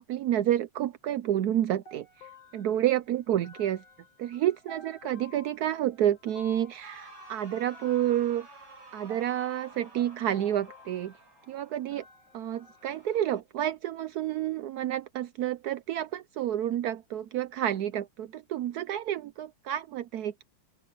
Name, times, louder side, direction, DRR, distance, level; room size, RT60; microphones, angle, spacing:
voice 1, 0.0-2.1 2.5-3.8 4.2-8.5 8.9-11.1 11.5-12.0 12.3-20.4, right 11 dB, 80° right, 0.8 m, -29 dB
sound 1, 1.9-13.1, left 3 dB, 70° left, 4.0 m, -53 dB
sound 2, 6.8-11.9 12.8-13.4, right 3 dB, 65° right, 5.6 m, -52 dB
open air
omnidirectional pair, 2.3 m